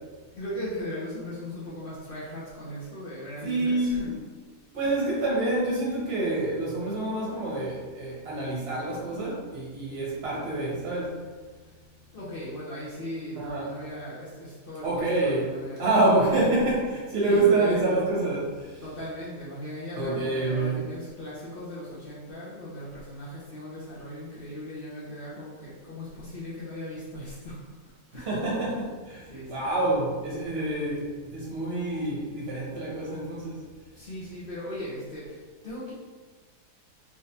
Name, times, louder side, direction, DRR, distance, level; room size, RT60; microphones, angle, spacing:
voice 1, 0.3-4.1 4.8-5.1 12.1-16.5 17.2-18.0 18.8-27.8 28.1-28.3 29.3-29.9 33.9-35.9, left 1 dB, 90° left, -8 dB, 0.4 m, -38 dB
voice 2, 3.4-4.1 4.7-11.1 13.3-13.7 14.8-15.5 15.8-18.8 19.9-20.9 28.3-33.6, right 2 dB, 40° right, -5 dB, 1.1 m, -27 dB
3.5 x 3.3 x 2.8 m, 1.4 s
omnidirectional pair, 2.0 m